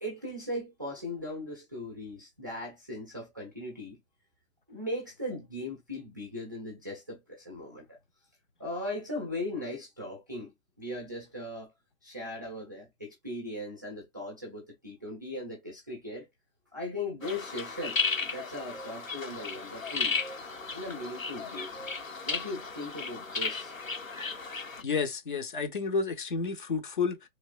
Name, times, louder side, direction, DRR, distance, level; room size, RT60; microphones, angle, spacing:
voice 1, 0.0-4.0 4.7-8.0 8.6-11.7 12.0-16.3 16.7-20.2 20.7-21.7 22.2-23.7, left 1 dB, 15° right, 0.4 m, -38 dB
sound 1, 17.2-24.8, left 4 dB, 90° left, 1.1 m, -35 dB
voice 2, 24.8-27.3, left 5 dB, 40° left, 0.6 m, -31 dB
3.2 x 2.9 x 2.3 m
figure-of-eight pair, 135°, 39 cm